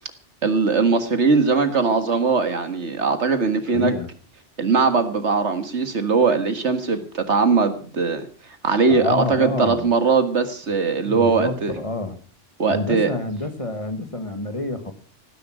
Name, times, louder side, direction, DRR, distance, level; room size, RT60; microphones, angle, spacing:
voice 1, 0.4-3.9 4.6-8.2 8.6-11.7 12.6-13.1, right 4 dB, 70° right, 9 dB, 2.0 m, -20 dB
voice 2, 3.7-4.1 8.9-9.9 11.0-12.2 12.7-14.9, left 2 dB, 30° left, 8 dB, 1.8 m, -27 dB
17.5 x 10.5 x 6.3 m, 0.41 s
omnidirectional pair, 1.2 m